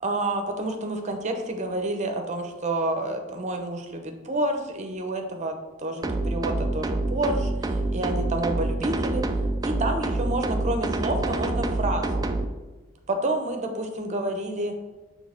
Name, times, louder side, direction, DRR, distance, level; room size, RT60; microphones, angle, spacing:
voice 1, 0.0-9.3 9.6-12.3 13.1-14.7, right 2 dB, 30° right, 4 dB, 0.8 m, -29 dB
sound 1, 6.0-12.5, right 2 dB, 15° right, 0.3 m, -27 dB
6.2 x 3.3 x 5.0 m, 1.2 s
head